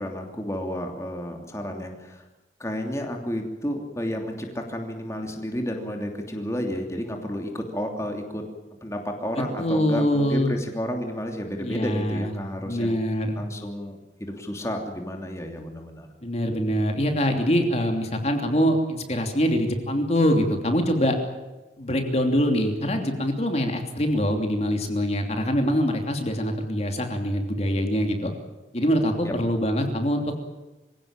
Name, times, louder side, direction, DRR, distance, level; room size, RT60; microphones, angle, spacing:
voice 1, 0.0-2.2 2.6-8.4 8.8-13.0 13.4-16.1 29.2-29.3, equal, 15° left, 3 dB, 3.0 m, -31 dB
voice 2, 9.6-10.6 11.6-12.3 12.6-13.4 16.2-21.1 21.8-28.3 28.7-30.4, equal, 35° left, 4 dB, 3.0 m, -24 dB
25.5 x 17.0 x 8.9 m, 1.1 s
head